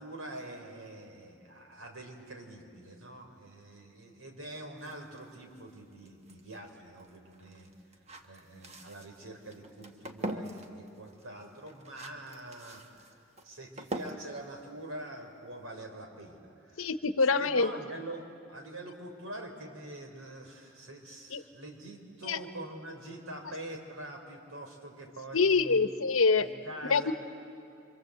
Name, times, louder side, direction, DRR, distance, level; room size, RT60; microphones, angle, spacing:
voice 1, 0.0-7.7 8.2-13.1 13.4-16.9 17.4-26.0 26.4-27.1, right 1 dB, 90° right, 3 dB, 3.8 m, -45 dB
sound 1, 4.8-15.6, right 1 dB, 30° right, 1.2 m, -44 dB
voice 2, 16.8-17.7 21.3-21.4 22.3-22.4 25.3-26.5 26.9-27.1, left 4 dB, 80° left, 11 dB, 0.9 m, -25 dB
26.0 x 25.5 x 7.9 m, 2.5 s
head